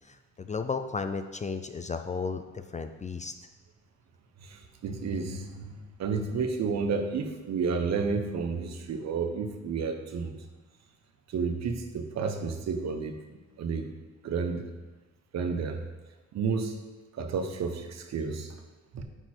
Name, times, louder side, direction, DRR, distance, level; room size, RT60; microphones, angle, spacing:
voice 1, 0.1-3.3, left 4 dB, 25° left, 8 dB, 0.4 m, -34 dB
voice 2, 4.4-10.3 11.3-13.2 13.6-13.9 14.2-14.6 15.3-15.8 16.3-16.8 17.1-18.5 18.9-19.0, right 5 dB, 60° right, 5 dB, 1.0 m, -31 dB
8.9 x 4.2 x 4.5 m, 1.2 s
cardioid pair, 90°, 30 cm